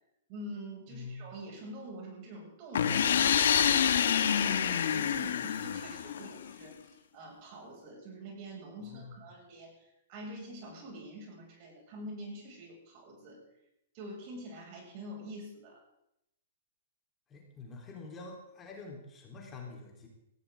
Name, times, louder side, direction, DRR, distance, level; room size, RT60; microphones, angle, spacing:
voice 1, 0.3-13.4 13.9-15.8, right 1 dB, 45° right, -1 dB, 6.7 m, -46 dB
voice 2, 0.9-1.2 8.8-9.1 17.3-20.1, left 4 dB, 20° left, -1 dB, 3.8 m, -46 dB
sound 1, 2.7-6.5, left 8 dB, 75° left, 1.3 m, -27 dB
18.0 x 16.0 x 3.8 m, 0.84 s
hypercardioid pair, 130°, 0 cm